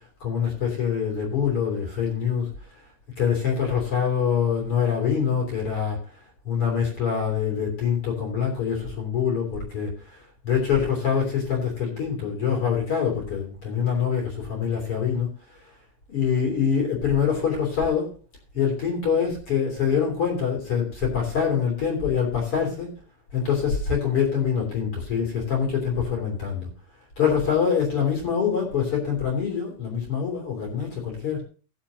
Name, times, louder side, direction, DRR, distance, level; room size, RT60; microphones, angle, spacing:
voice 1, 0.2-2.5 3.2-6.0 6.4-9.9 10.4-15.3 16.1-18.1 18.5-23.0 23.3-26.7 27.2-31.4, left 7 dB, 30° left, 1 dB, 3.4 m, -25 dB
18.5 x 7.6 x 2.8 m, 0.37 s
omnidirectional pair, 5.9 m